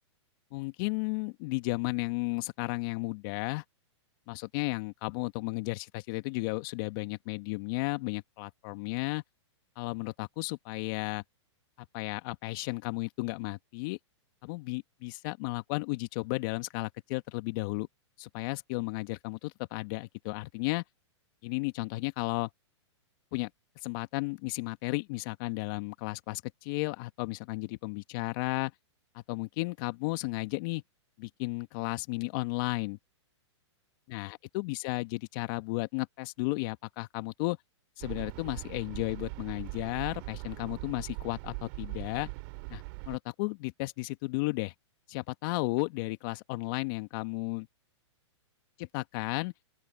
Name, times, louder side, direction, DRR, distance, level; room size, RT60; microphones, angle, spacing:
voice 1, 0.5-3.6 4.3-9.2 9.8-11.2 11.8-14.0 14.4-17.9 18.2-20.8 21.4-22.5 23.3-23.5 23.8-28.7 29.1-30.8 31.2-33.0 34.1-37.6 38.0-42.3 42.7-44.7 45.1-47.7 48.8-49.5, left 24 dB, 45° left, 2.0 m, -34 dB
sound 1, 38.0-43.2, right 31 dB, 45° right, 3.2 m, -41 dB
open air
hypercardioid pair, 125°, 15 cm